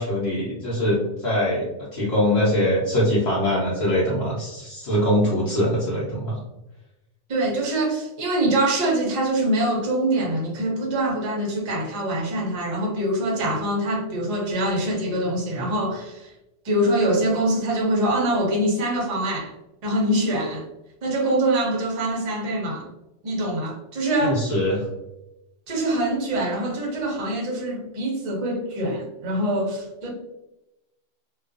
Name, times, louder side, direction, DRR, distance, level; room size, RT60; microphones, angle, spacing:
voice 1, 0.0-6.4 24.2-24.9, equal, 65° left, 1.0 m, -23 dB
voice 2, 7.3-16.3 16.6-19.5 19.8-20.6 21.0-22.9 23.2-24.5 25.7-30.1, right 1 dB, 45° right, 0.5 m, -24 dB
2.4 x 2.2 x 2.4 m
omnidirectional pair, 1.3 m